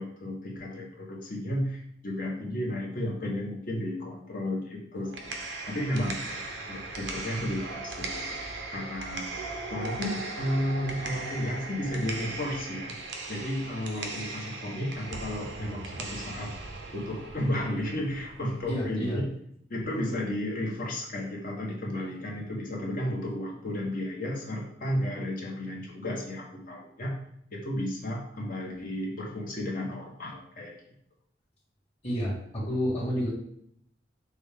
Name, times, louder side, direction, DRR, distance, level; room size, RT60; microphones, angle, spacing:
voice 1, 0.0-5.4 5.7-8.4 8.7-9.3 9.7-13.0 13.3-16.5 16.9-19.3 19.7-27.2 27.5-30.7, left 1 dB, 50° left, -2 dB, 1.2 m, -33 dB
sound 1, 4.9-18.9, right 3 dB, 70° right, 0.7 m, -38 dB
voice 2, 18.7-19.2 32.0-33.3, equal, 35° left, -6 dB, 1.9 m, -29 dB
6.2 x 2.4 x 3.5 m, 0.68 s
head